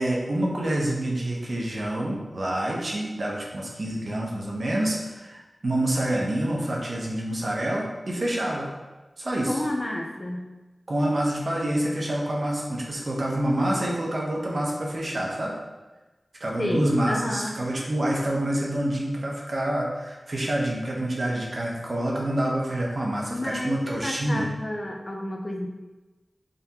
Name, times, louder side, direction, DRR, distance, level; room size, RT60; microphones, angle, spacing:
voice 1, 0.0-8.7 9.2-9.5 10.9-15.5 16.4-24.5, right 1 dB, 60° right, -2 dB, 0.7 m, -27 dB
voice 2, 9.5-10.5 16.6-17.5 23.3-25.7, left 1 dB, 35° left, 1 dB, 0.5 m, -30 dB
3.8 x 3.3 x 2.8 m, 1.2 s
wide cardioid pair, 70°, 0 cm